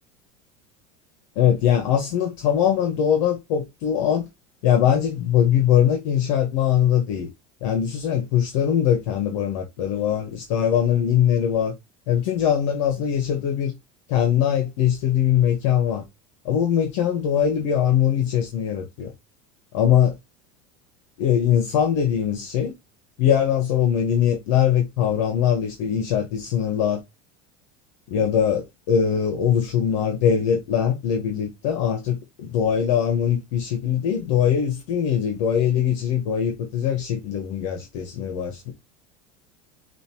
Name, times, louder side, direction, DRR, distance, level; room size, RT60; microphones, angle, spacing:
voice 1, 1.4-4.3 4.6-7.3 7.6-11.7 12.1-13.7 14.1-16.0 16.4-19.1 19.7-20.2 21.2-22.7 23.2-27.0 28.1-38.7, left 9 dB, 75° left, 1.2 m, -21 dB
6.5 x 2.6 x 3.0 m
supercardioid pair, 130°, 16 cm